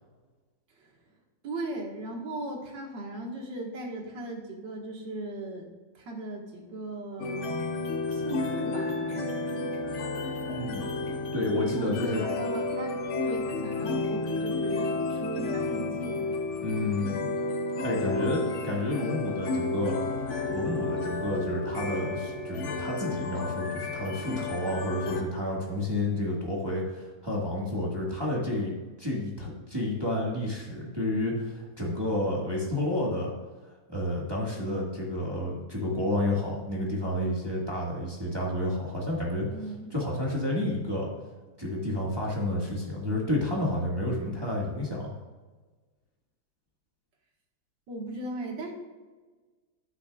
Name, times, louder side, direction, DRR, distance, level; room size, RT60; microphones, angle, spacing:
voice 1, 1.4-5.7 6.0-7.5 8.1-9.5 11.6-16.3 39.5-39.9 47.9-48.7, right 2 dB, 75° right, 0 dB, 2.2 m, -37 dB
sound 1, 7.2-25.2, left 3 dB, 60° left, 0.8 m, -31 dB
voice 2, 10.5-10.9 11.3-12.2 16.6-17.3 17.8-28.7 29.0-33.3 33.9-39.5 39.9-41.1 41.6-45.2, left 1 dB, 15° right, -4 dB, 1.5 m, -30 dB
10.0 x 9.3 x 2.3 m, 1.3 s
omnidirectional pair, 2.0 m